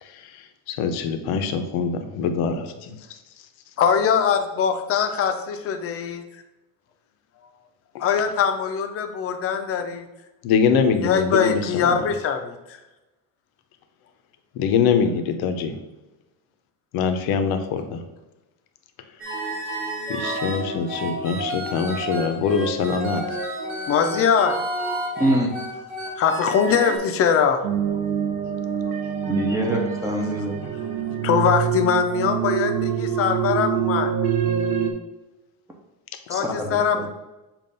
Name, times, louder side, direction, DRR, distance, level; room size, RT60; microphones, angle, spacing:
voice 1, 0.0-3.2 7.9-8.1 10.4-12.0 14.5-15.8 16.9-18.0 20.1-23.2 30.6-30.7, left 6 dB, 70° left, 7 dB, 0.8 m, -24 dB
voice 2, 3.8-6.2 8.0-10.1 11.0-12.8 23.9-24.6 26.2-27.6 28.8-28.9 31.2-34.1 36.3-37.1, left 7 dB, 35° left, 6 dB, 0.6 m, -22 dB
sound 1, 19.2-27.0, right 2 dB, 30° right, 1.5 m, -30 dB
voice 3, 25.2-25.5 29.3-30.5 36.3-37.1, right 1 dB, 10° right, 0 dB, 0.5 m, -24 dB
sound 2, 27.6-34.9, right 8 dB, 65° right, 0.9 m, -25 dB
7.3 x 2.5 x 5.3 m, 1.0 s
cardioid pair, 170°, 39 cm